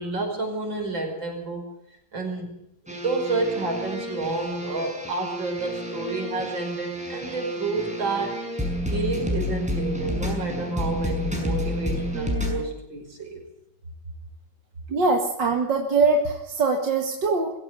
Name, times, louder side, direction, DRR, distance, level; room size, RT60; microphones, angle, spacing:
voice 1, 0.0-1.7 2.1-2.5 3.0-8.4 8.9-13.4, right 3 dB, 85° right, 3 dB, 6.2 m, -29 dB
sound 1, 2.9-12.6, equal, 5° right, 6.0 m, -30 dB
voice 2, 14.9-17.5, right 3 dB, 70° right, 2 dB, 2.5 m, -22 dB
22.5 x 16.0 x 8.2 m, 0.79 s
omnidirectional pair, 2.0 m